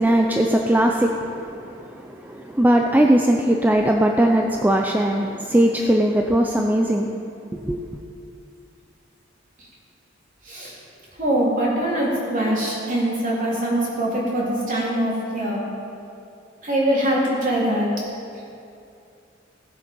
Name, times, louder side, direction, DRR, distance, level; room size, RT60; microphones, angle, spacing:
voice 1, 0.0-1.8 2.0-7.1 7.6-7.8, right 1 dB, 10° right, 2 dB, 0.5 m, -19 dB
voice 2, 11.2-15.6 16.6-17.9, right 1 dB, 45° right, -5 dB, 3.4 m, -23 dB
17.0 x 7.8 x 5.4 m, 2.6 s
head